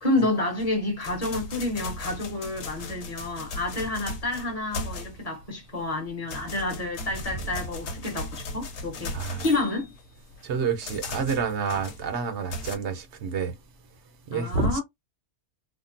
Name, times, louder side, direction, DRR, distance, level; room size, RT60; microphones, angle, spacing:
voice 1, 0.0-9.9 14.3-14.8, left 2 dB, 30° left, 1.0 m, -29 dB
sound 1, 0.6-5.4 5.8-12.8, left 2 dB, 65° left, 1.1 m, -37 dB
voice 2, 9.1-9.4 10.4-13.5 14.3-14.8, right 5 dB, 60° right, 0.9 m, -28 dB
3.6 x 2.0 x 2.5 m
omnidirectional pair, 1.5 m